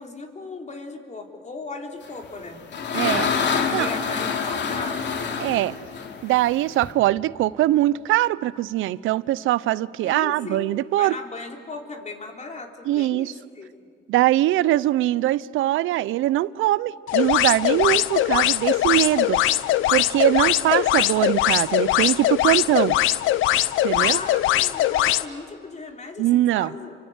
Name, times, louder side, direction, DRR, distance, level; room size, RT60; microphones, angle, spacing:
voice 1, 0.0-2.6 3.5-5.3 10.0-13.7 23.8-27.0, left 3 dB, 35° left, 3.7 m, -37 dB
sound 1, 2.2-6.9, left 6 dB, 60° left, 2.8 m, -26 dB
voice 2, 2.9-3.3 3.7-3.9 5.4-5.8 6.2-11.2 12.9-13.3 14.1-19.4 19.9-22.9 23.8-24.2 26.2-26.7, right 15 dB, 85° right, 0.6 m, -22 dB
sound 2, 17.1-25.2, left 14 dB, 85° left, 0.7 m, -21 dB
29.5 x 24.0 x 8.1 m
cardioid pair, 90°, 20 cm